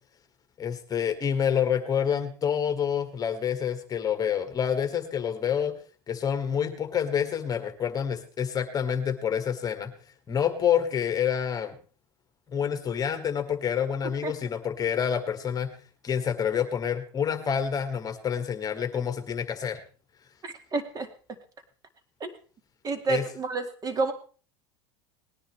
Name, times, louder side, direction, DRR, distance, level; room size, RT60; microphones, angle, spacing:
voice 1, 0.6-5.7 6.1-9.9 10.3-11.8 12.5-15.7 16.0-19.8 23.1-23.2, left 8 dB, 30° left, 7 dB, 1.7 m, -27 dB
voice 2, 20.4-21.1 22.2-22.3 22.8-24.1, right 3 dB, 30° right, 9 dB, 2.0 m, -29 dB
19.5 x 10.0 x 3.3 m, 0.37 s
supercardioid pair, 105°, 13 cm